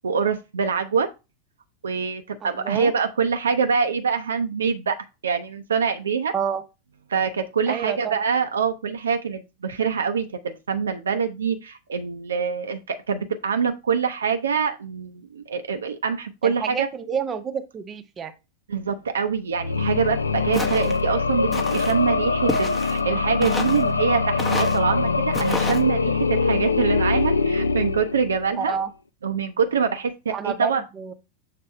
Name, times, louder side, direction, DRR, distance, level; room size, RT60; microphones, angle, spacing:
voice 1, 0.0-1.1 1.8-5.0 5.2-6.3 7.1-16.9 18.7-28.8 29.2-30.8, right 6 dB, 70° right, 8 dB, 0.5 m, -25 dB
voice 2, 2.4-2.9 6.3-6.6 7.7-8.2 16.4-18.3 28.6-28.9 30.3-31.1, right 7 dB, 25° right, 8 dB, 0.7 m, -29 dB
sound 1, 19.5-28.6, left 4 dB, 75° left, 0.3 m, -23 dB
Walk footsteps, 20.5-21.0 21.5-22.0 22.5-23.0 23.4-23.8 24.4-24.8 25.3-25.8, left 1 dB, 10° left, 0.8 m, -30 dB
6.7 x 3.4 x 4.2 m, 0.27 s
figure-of-eight pair, 90°, 0 cm